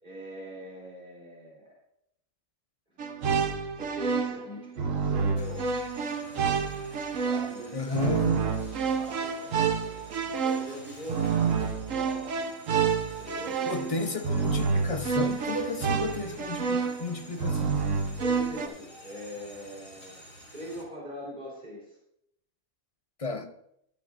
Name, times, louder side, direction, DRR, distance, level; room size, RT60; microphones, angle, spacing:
voice 1, 0.0-1.7 2.9-3.4 3.8-5.8 7.1-12.5 13.0-13.9 18.2-20.2 20.5-22.0, equal, 35° right, 3.9 m, -42 dB
sound 1, 3.0-18.7, right 6 dB, 65° right, 1.3 m, -28 dB
sound 2, 5.4-20.8, equal, 70° left, 3.7 m, -50 dB
voice 2, 7.7-8.4 13.7-17.8 23.2-23.5, left 3 dB, 35° left, 0.6 m, -33 dB
13.5 x 12.5 x 2.5 m
omnidirectional pair, 1.5 m